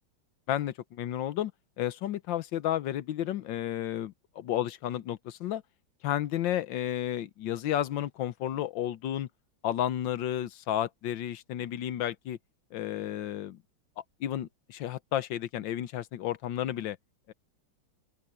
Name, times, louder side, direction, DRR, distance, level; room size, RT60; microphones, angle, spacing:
voice 1, 0.5-1.5 1.8-5.6 6.0-9.3 9.6-12.4 12.7-13.6 14.2-17.0 17.3-17.4, left 12 dB, 65° left, 1.4 m, -32 dB
open air
omnidirectional pair, 2.4 m